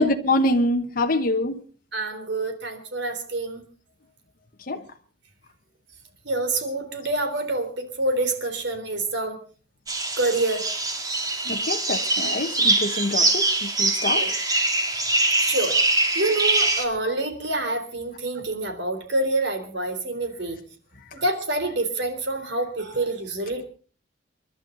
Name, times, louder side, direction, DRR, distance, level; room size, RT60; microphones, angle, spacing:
voice 1, 0.0-1.6 4.7-4.8 11.5-14.2, left 1 dB, 50° left, 4 dB, 1.1 m, -24 dB
voice 2, 1.9-3.6 6.3-9.4 10.2-10.6 14.1-14.4 15.4-20.6 21.1-23.7, right 2 dB, 65° right, 7 dB, 3.6 m, -27 dB
sound 1, 9.9-16.8, right 2 dB, 20° right, 2.3 m, -23 dB
29.0 x 11.5 x 3.9 m, 0.39 s
head